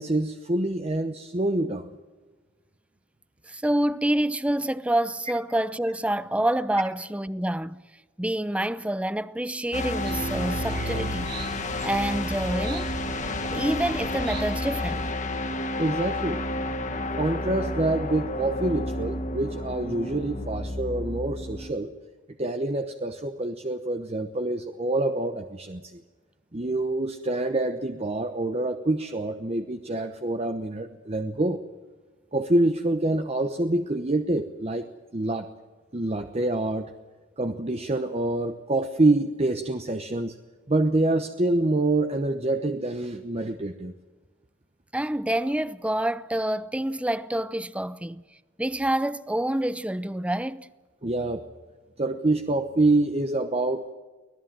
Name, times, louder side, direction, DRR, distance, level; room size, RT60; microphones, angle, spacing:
voice 1, 0.0-1.9 15.8-16.4 17.2-21.9 22.4-26.0 26.5-31.6 32.3-34.9 35.1-35.5 35.9-36.9 37.4-40.4 40.7-43.9 51.0-51.4 52.0-53.9, right 2 dB, 30° right, 1.0 m, -26 dB
voice 2, 3.5-7.8 8.2-11.3 11.8-13.0 13.5-15.1 44.9-48.2 48.6-50.7, right 1 dB, 5° right, 0.6 m, -27 dB
sound 1, 9.7-21.7, left 2 dB, 40° left, 1.5 m, -31 dB
sound 2, 10.0-15.1, right 4 dB, 55° right, 1.2 m, -37 dB
24.5 x 18.5 x 7.5 m
head